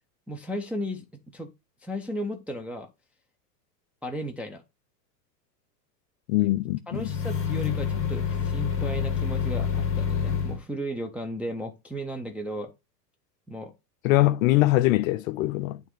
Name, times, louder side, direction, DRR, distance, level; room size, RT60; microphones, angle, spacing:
voice 1, 0.3-1.1 1.3-1.5 1.8-2.9 4.0-4.6 6.9-12.7 13.5-13.7, equal, 5° right, 0.4 m, -35 dB
voice 2, 6.3-7.0 14.0-15.8, left 17 dB, 55° left, 0.6 m, -22 dB
sound 1, 6.9-10.6, left 7 dB, 25° left, 1.9 m, -27 dB
8.8 x 3.4 x 4.5 m
hypercardioid pair, 115°, 50 cm